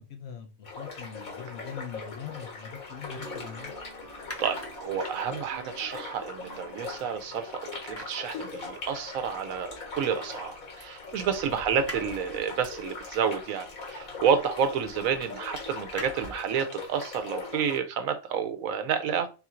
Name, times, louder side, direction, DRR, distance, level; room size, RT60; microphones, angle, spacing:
voice 1, 0.0-3.7, left 7 dB, 60° left, 0.8 m, -42 dB
sound 1, 0.6-17.8, left 4 dB, 85° left, 2.0 m, -41 dB
sound 2, 2.9-7.4 7.7-16.6, equal, 15° left, 0.6 m, -47 dB
sound 3, 3.1-8.6, right 4 dB, 45° right, 0.9 m, -51 dB
voice 2, 4.4-19.3, right 7 dB, 80° right, 1.1 m, -30 dB
3.8 x 2.5 x 4.3 m
omnidirectional pair, 1.4 m